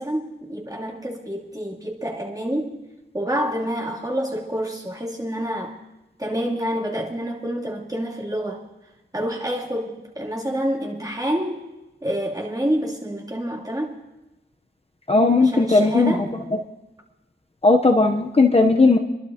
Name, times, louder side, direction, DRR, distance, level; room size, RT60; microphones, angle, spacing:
voice 1, 0.0-2.8 3.1-5.7 6.2-8.6 9.1-11.6 12.0-14.0 15.4-16.3, equal, 20° right, -4 dB, 2.8 m, -27 dB
voice 2, 15.1-16.1 17.6-19.0, left 3 dB, 30° left, 3 dB, 0.8 m, -16 dB
29.0 x 11.5 x 2.8 m, 1.0 s
wide cardioid pair, 80°, 20 cm